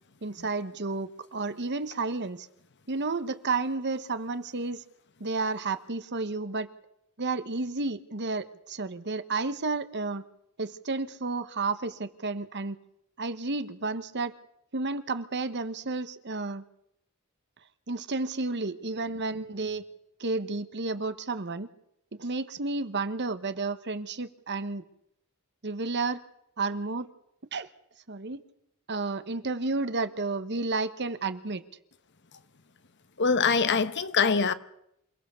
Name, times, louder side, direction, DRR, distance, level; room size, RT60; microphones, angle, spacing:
voice 1, 0.2-2.5 2.9-4.8 5.2-6.7 7.2-10.2 10.6-12.8 13.2-14.3 14.7-16.6 17.9-19.8 20.2-21.7 22.2-24.8 25.6-26.2 26.6-27.1 27.5-27.7 28.1-28.4 28.9-31.6, right 3 dB, 55° right, 1.2 m, -31 dB
voice 2, 33.2-34.5, left 5 dB, 55° left, 1.1 m, -23 dB
28.0 x 17.5 x 6.9 m
head